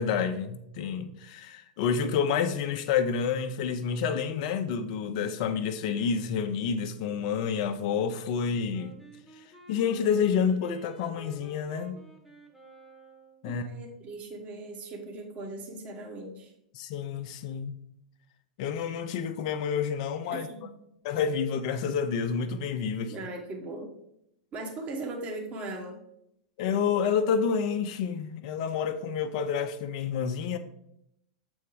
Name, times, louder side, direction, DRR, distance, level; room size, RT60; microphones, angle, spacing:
voice 1, 0.0-8.9 9.7-12.0 13.4-13.7 16.7-17.7 18.6-20.5 21.0-23.1 26.6-30.6, left 6 dB, 55° left, 0.7 m, -29 dB
Wind instrument woodwind instrument, 8.7-13.4, right 4 dB, 5° right, 1.2 m, -51 dB
voice 2, 13.4-16.5 20.3-20.7 23.1-23.9 24.5-26.0, right 2 dB, 35° right, 1.5 m, -39 dB
7.6 x 3.5 x 4.8 m
hypercardioid pair, 100°, 4 cm